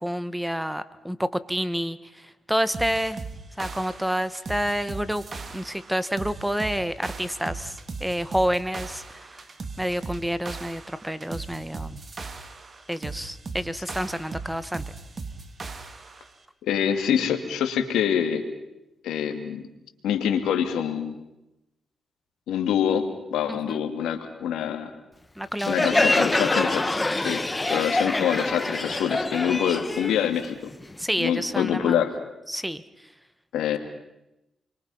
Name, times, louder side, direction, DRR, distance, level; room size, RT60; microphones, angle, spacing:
voice 1, 0.0-3.2 3.6-5.2 5.5-9.4 9.8-12.0 12.9-14.8 23.5-23.8 25.4-26.1 31.0-32.0 32.5-32.8, equal, 5° right, 15 dB, 1.5 m, -29 dB
sound 1, 2.7-16.3, right 4 dB, 45° right, 2.7 m, -38 dB
voice 2, 16.6-18.4 19.0-19.6 20.0-21.2 22.5-24.9 25.7-26.9 27.2-27.4 27.7-30.7 31.2-32.1 33.5-33.8, left 9 dB, 90° left, 7 dB, 2.4 m, -25 dB
Crowd, 25.6-31.0, left 2 dB, 20° left, 1.2 m, -25 dB
29.0 x 23.5 x 5.7 m, 0.91 s
supercardioid pair, 55°, 0 cm